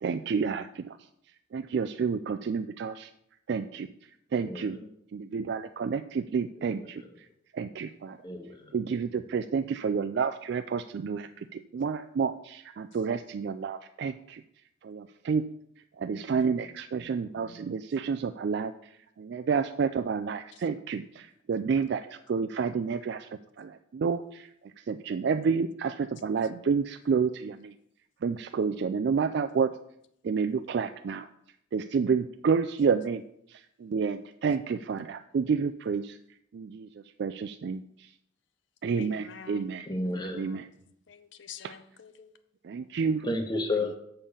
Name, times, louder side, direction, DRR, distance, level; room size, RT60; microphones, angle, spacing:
voice 1, 0.0-1.0 1.5-3.1 3.5-3.9 4.3-4.8 5.1-7.0 7.5-8.2 8.7-14.4 14.8-15.4 16.0-18.7 19.2-23.3 23.6-24.5 24.9-27.7 28.2-29.7 30.2-31.3 31.7-33.2 33.5-36.2 36.5-36.9 37.2-37.8 38.8-39.9 40.3-40.7 41.6-41.7 42.6-43.2, right 5 dB, 55° right, 8 dB, 0.3 m, -29 dB
voice 2, 8.2-8.6 39.9-40.5 43.2-44.0, left 2 dB, 20° left, 4 dB, 1.1 m, -31 dB
voice 3, 16.1-16.8 21.2-21.3 38.9-39.8 40.0-40.7 41.1-42.3, left 6 dB, 65° left, 11 dB, 0.6 m, -49 dB
6.7 x 5.5 x 7.1 m, 0.74 s
head